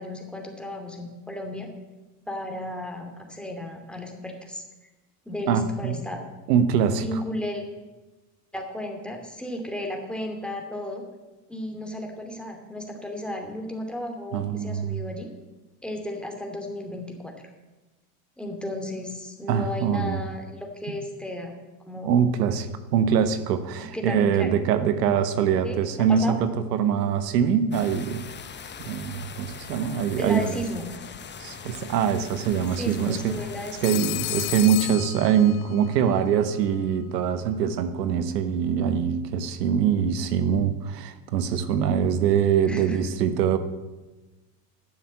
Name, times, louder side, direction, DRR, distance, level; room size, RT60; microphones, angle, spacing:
voice 1, 0.0-1.7 2.3-4.6 5.3-6.3 6.9-7.6 8.5-11.0 11.5-15.3 15.8-17.3 18.4-21.5 21.8-22.1 23.8-24.5 25.0-25.1 25.6-26.4 30.2-30.9 32.8-34.1 42.7-43.0, left 1 dB, ahead, 2 dB, 2.6 m, -34 dB
voice 2, 5.5-6.0 6.5-7.0 14.3-15.0 19.5-20.2 22.0-28.3 28.8-30.6 31.4-33.4 33.8-43.6, right 8 dB, 90° right, 11 dB, 1.2 m, -23 dB
sound 1, 27.7-34.7, left 6 dB, 25° left, 0.9 m, -41 dB
Telephone, 33.8-35.9, left 21 dB, 75° left, 0.6 m, -32 dB
10.0 x 7.1 x 8.5 m, 1.1 s
supercardioid pair, 95°, 47 cm